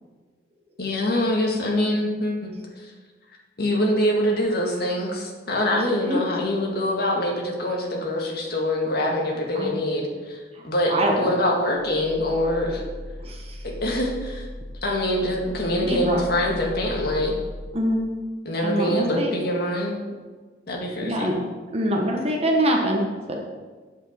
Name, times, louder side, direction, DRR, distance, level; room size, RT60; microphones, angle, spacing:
voice 1, 0.8-2.9 3.6-10.4 10.6-12.8 13.6-14.5 14.8-17.3 18.4-20.0 20.7-21.3, left 1 dB, 60° left, 0 dB, 1.8 m, -24 dB
voice 2, 10.9-11.3 13.2-13.6 15.8-16.2 17.7-18.0 18.6-19.3 21.0-21.4 21.7-23.4, equal, 35° right, 0 dB, 1.2 m, -24 dB
sound 1, 11.8-17.7, left 1 dB, 20° left, 0.6 m, -37 dB
8.5 x 8.1 x 4.4 m, 1.4 s
head